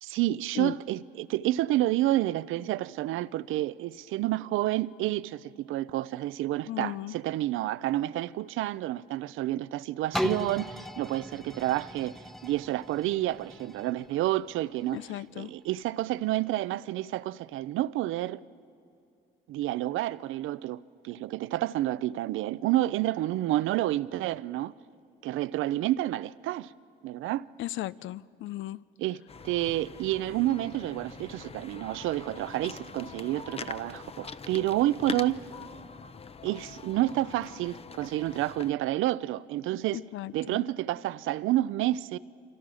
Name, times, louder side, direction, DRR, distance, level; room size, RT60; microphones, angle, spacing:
voice 1, 0.0-18.4 19.5-24.7 25.2-26.7 27.0-27.4 29.0-35.4 36.4-40.0 40.3-42.2, right 15 dB, 90° right, 0.5 m, -29 dB
voice 2, 6.7-7.1 14.9-15.5 27.6-28.8 39.9-40.6, left 15 dB, 75° left, 0.5 m, -36 dB
sound 1, 10.1-15.9 16.4-16.5, equal, ahead, 0.9 m, -38 dB
sound 2, 29.3-38.7, left 5 dB, 30° left, 0.7 m, -43 dB
28.0 x 26.0 x 6.3 m
cardioid pair, 90°, 20 cm